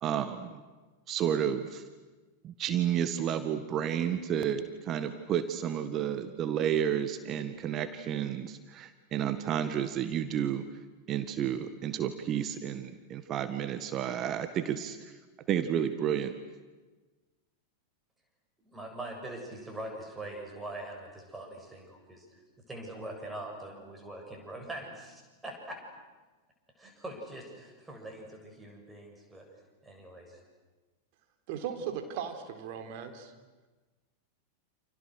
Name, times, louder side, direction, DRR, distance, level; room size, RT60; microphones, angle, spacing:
voice 1, 0.0-0.6 1.1-1.8 2.4-10.7 11.1-15.1 15.5-16.4, right 9 dB, 30° right, 10 dB, 1.6 m, -31 dB
voice 2, 18.6-22.3 22.7-25.8 26.8-29.5 29.8-30.4, right 1 dB, 10° right, 2 dB, 7.4 m, -43 dB
voice 3, 31.5-33.3, right 8 dB, 45° right, 6 dB, 3.9 m, -37 dB
29.5 x 29.0 x 6.6 m, 1.3 s
figure-of-eight pair, 90°, 0 cm